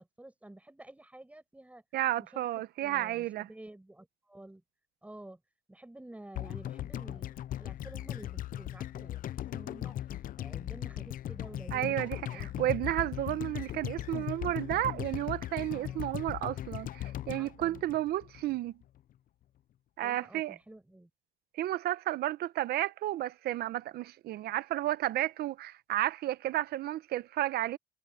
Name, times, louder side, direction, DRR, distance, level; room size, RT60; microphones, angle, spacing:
voice 1, 0.0-1.8 2.2-2.5 2.8-4.6 5.0-5.4 5.7-12.7 15.7-16.1 17.3-17.8 20.0-21.1, right 1 dB, 10° right, 8.0 m, -51 dB
voice 2, 1.9-3.5 11.7-18.8 20.0-20.5 21.6-27.8, right 14 dB, 70° right, 0.9 m, -32 dB
sound 1, 6.3-18.6 18.8-18.9, left 12 dB, 55° left, 0.7 m, -38 dB
cardioid pair, 110°, 17 cm